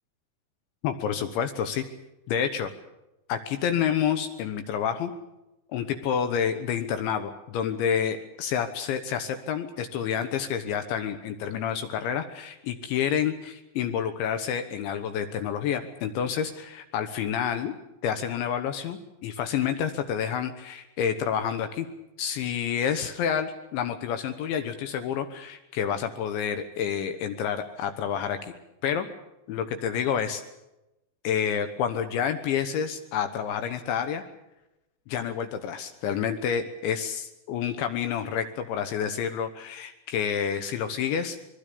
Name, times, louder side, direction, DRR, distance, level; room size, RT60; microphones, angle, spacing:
voice 1, 0.8-1.8 2.3-2.7 3.3-5.1 5.7-17.7 18.0-21.9 22.2-28.5 28.8-29.1 29.5-30.4 31.2-34.2 35.1-41.4, left 8 dB, 70° left, 8 dB, 3.3 m, -29 dB
25.5 x 21.0 x 6.9 m, 0.93 s
omnidirectional pair, 5.8 m